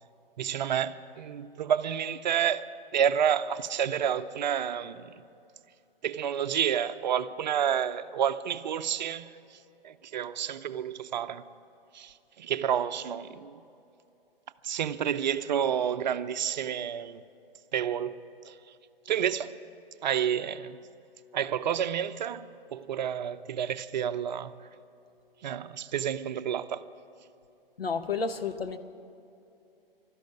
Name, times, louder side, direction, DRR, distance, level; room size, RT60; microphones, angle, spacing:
voice 1, 0.4-2.7 2.9-5.2 6.0-9.3 9.8-11.4 11.9-13.6 14.6-17.2 17.7-18.2 18.4-18.6 19.1-19.5 20.0-20.8 21.3-24.5 25.4-26.8, right 9 dB, 50° right, 0.6 m, -29 dB
voice 2, 27.8-28.8, left 5 dB, 85° left, 1.0 m, -31 dB
12.5 x 11.5 x 9.2 m
figure-of-eight pair, 125°, 29 cm